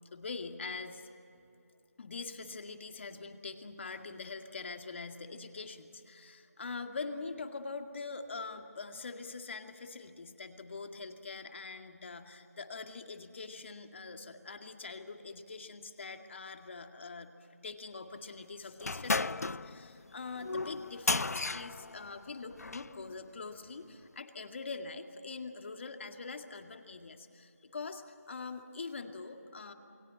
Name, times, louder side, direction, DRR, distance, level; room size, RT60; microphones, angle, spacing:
voice 1, 0.1-1.1 2.0-29.7, left 4 dB, 45° left, 5 dB, 2.2 m, -43 dB
sound 1, 18.8-23.0, left 3 dB, 70° left, 0.7 m, -34 dB
29.5 x 20.5 x 7.9 m, 2.9 s
figure-of-eight pair, 160°, 9 cm